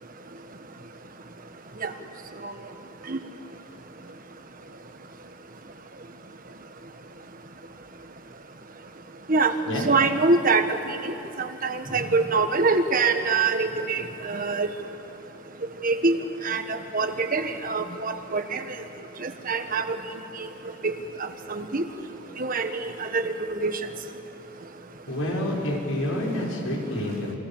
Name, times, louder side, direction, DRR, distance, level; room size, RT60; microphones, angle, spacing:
voice 1, 9.8-11.1 11.4-14.7 15.8-16.2 16.4-18.6 19.2-20.0 20.8-20.9 21.2-21.8 22.4-23.3 23.6-23.8, right 3 dB, 40° right, 7 dB, 1.5 m, -24 dB
voice 2, 25.1-27.4, left 1 dB, 80° left, -2 dB, 6.0 m, -28 dB
28.5 x 24.5 x 7.4 m, 2.9 s
head